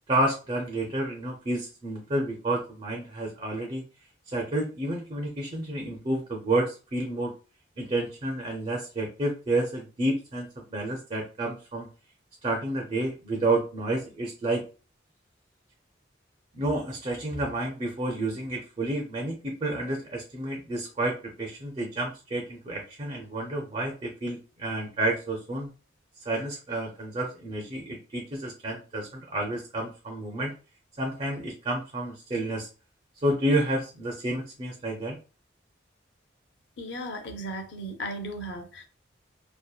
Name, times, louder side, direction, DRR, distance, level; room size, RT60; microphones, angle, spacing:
voice 1, 0.1-3.8 4.3-7.3 7.8-11.9 12.4-14.6 16.5-25.7 26.3-30.5 31.0-32.7 33.2-35.2, right 1 dB, 35° right, 0.4 m, -30 dB
voice 2, 36.8-38.8, equal, 70° left, 0.5 m, -36 dB
2.7 x 2.1 x 2.3 m
head